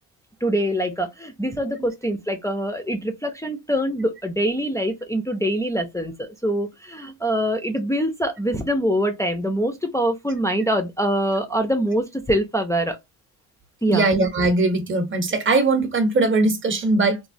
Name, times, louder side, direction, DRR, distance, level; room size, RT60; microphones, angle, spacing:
voice 1, 0.4-13.0 13.8-14.0, equal, 10° left, 0.3 m, -24 dB
voice 2, 13.9-17.2, right 3 dB, 30° right, 0.6 m, -20 dB
3.0 x 2.1 x 2.5 m
cardioid pair, 115°, 39 cm